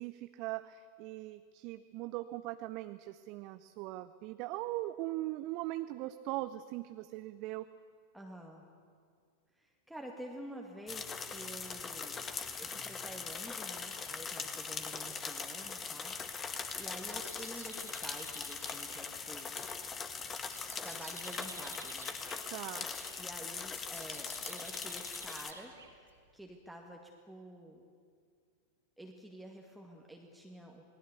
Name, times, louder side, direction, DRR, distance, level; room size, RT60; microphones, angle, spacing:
voice 1, 0.0-7.7 22.5-22.9, right 17 dB, 45° right, 11 dB, 0.7 m, -40 dB
voice 2, 8.1-8.6 9.6-12.2 12.6-16.2 16.8-19.7 20.8-22.1 23.2-27.8 29.0-30.8, right 1 dB, ahead, 1 dB, 2.1 m, -49 dB
sound 1, 10.9-25.5, left 5 dB, 20° left, 1.8 m, -41 dB
sound 2, 16.5-26.4, right 4 dB, 75° right, 3.1 m, -54 dB
28.0 x 20.0 x 8.3 m, 2.1 s
figure-of-eight pair, 90°, 0 cm